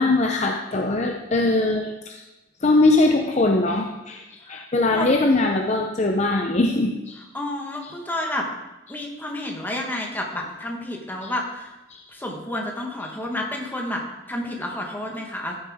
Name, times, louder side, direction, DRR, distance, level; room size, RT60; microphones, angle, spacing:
voice 1, 0.0-2.2 2.6-7.2 7.8-7.9 11.2-11.3 11.9-12.0, left 2 dB, 35° left, 3 dB, 0.6 m, -21 dB
voice 2, 7.3-8.5 8.9-11.7 12.1-14.0 14.3-15.6, left 1 dB, 10° left, 0 dB, 1.4 m, -30 dB
14.0 x 7.4 x 3.6 m, 1.0 s
head